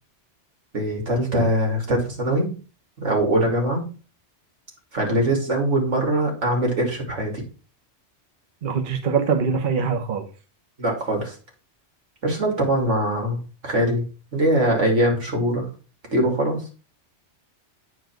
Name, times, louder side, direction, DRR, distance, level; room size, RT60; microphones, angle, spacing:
voice 1, 0.7-2.5 3.0-3.8 4.9-7.3 10.8-11.3 12.2-14.0 14.3-15.7 16.1-16.6, right 1 dB, 90° right, 1 dB, 2.8 m, -22 dB
voice 2, 8.6-10.3, right 6 dB, 45° right, 4 dB, 1.1 m, -23 dB
9.2 x 4.6 x 4.5 m, 0.35 s
omnidirectional pair, 1.2 m